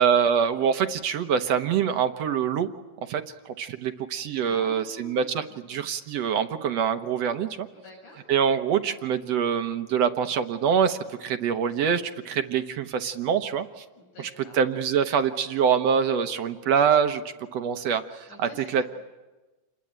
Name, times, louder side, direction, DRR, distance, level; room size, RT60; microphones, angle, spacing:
voice 1, 0.0-2.7 3.1-7.7 8.3-13.8 14.2-14.3 14.5-17.2 17.5-18.8, right 7 dB, 65° right, 8 dB, 2.1 m, -25 dB
voice 2, 4.4-5.6 7.7-8.3 13.9-14.6 18.3-18.8, left 1 dB, 85° left, 2 dB, 8.0 m, -47 dB
28.5 x 21.5 x 8.9 m, 1.2 s
omnidirectional pair, 3.3 m